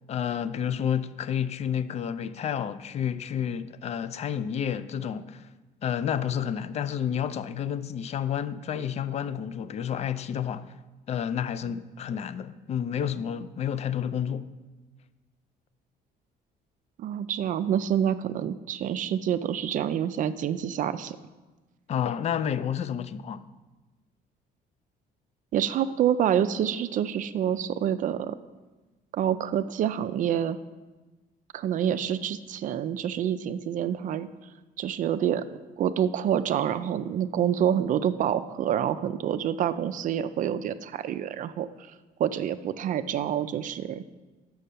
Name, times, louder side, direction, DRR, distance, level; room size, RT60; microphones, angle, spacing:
voice 1, 0.1-5.5 5.8-10.7 11.1-14.5 21.9-23.4, left 8 dB, 40° left, 0.4 m, -30 dB
voice 2, 17.0-21.2 25.5-28.4 29.1-30.6 31.5-34.3 34.8-35.4 35.8-41.7 42.2-44.0, right 9 dB, 50° right, 0.4 m, -27 dB
6.3 x 5.5 x 6.8 m
cardioid pair, 110°, 17 cm